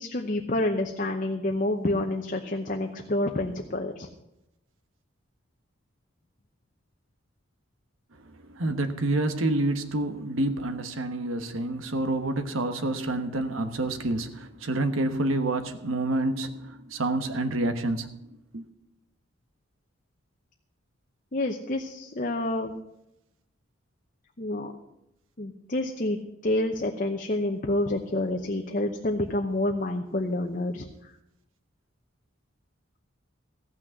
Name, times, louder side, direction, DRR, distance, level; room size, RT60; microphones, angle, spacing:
voice 1, 0.0-4.1 21.3-22.8 24.4-24.7 25.4-30.9, left 1 dB, 40° left, 3 dB, 0.8 m, -28 dB
voice 2, 8.5-18.1 18.5-18.6, right 2 dB, 85° right, 8 dB, 1.2 m, -28 dB
15.0 x 6.1 x 8.0 m, 0.84 s
head